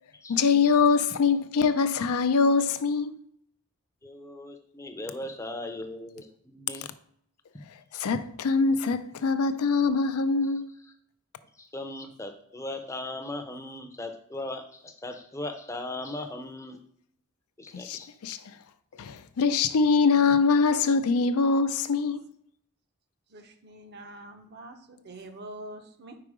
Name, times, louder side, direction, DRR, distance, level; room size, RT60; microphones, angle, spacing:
voice 1, 0.3-3.2 7.9-10.7 17.7-18.5 19.0-22.3, left 5 dB, 80° left, 0.4 m, -23 dB
voice 2, 4.0-6.9 7.9-8.0 11.6-16.8 17.6-18.1, left 2 dB, 15° left, 0.5 m, -38 dB
voice 3, 23.3-26.2, right 1 dB, 45° right, 0.7 m, -45 dB
4.8 x 4.6 x 4.8 m
head